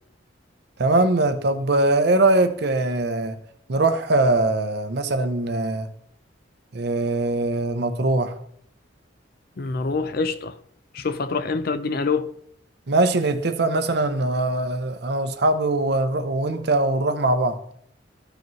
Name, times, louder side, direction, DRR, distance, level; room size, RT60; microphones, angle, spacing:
voice 1, 0.8-3.4 3.7-5.9 6.7-8.3 12.9-17.6, right 2 dB, 55° right, 0.7 m, -21 dB
voice 2, 9.6-10.6 10.9-12.3, left 4 dB, 50° left, 0.5 m, -25 dB
13.5 x 4.9 x 3.1 m
head